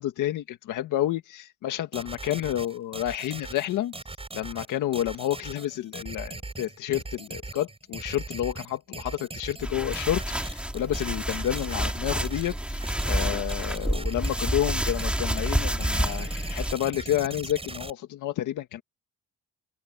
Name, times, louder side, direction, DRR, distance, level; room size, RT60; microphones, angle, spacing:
voice 1, 0.0-3.9 4.3-18.8, left 12 dB, 85° left, 1.9 m, -30 dB
sound 1, 1.9-17.9, right 2 dB, 20° right, 6.6 m, -40 dB
sound 2, 9.6-16.7, equal, 5° right, 2.4 m, -29 dB
cardioid pair, 90°, 30 cm